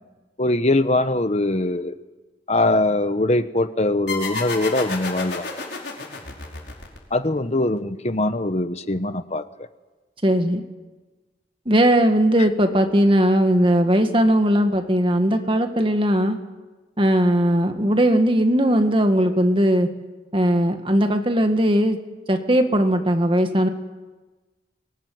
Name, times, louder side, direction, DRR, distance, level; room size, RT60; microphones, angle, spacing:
voice 1, 0.4-1.9 2.5-5.5 7.1-9.4, left 2 dB, 40° left, 11 dB, 1.1 m, -22 dB
sound 1, 4.1-7.4, left 4 dB, 70° left, 5.2 m, -31 dB
voice 2, 10.2-10.6 11.7-16.4 17.0-19.9 20.3-22.0 22.3-23.7, equal, 30° right, 6 dB, 2.0 m, -18 dB
23.0 x 19.5 x 9.5 m, 1.2 s
head